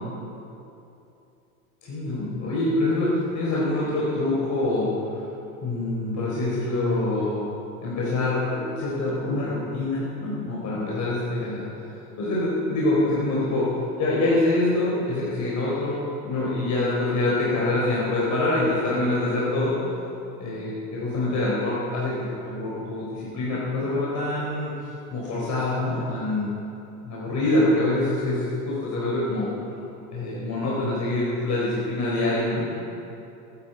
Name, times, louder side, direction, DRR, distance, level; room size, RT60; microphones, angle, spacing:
voice 1, 1.8-5.2 5.6-7.4 7.8-11.6 12.2-13.7 14.0-16.0 16.2-19.8 20.4-24.7 25.1-26.5 27.0-29.5 30.1-32.7, left 2 dB, 35° left, -6 dB, 4.1 m, -25 dB
18.5 x 10.5 x 5.2 m, 2.8 s
hypercardioid pair, 100°, 46 cm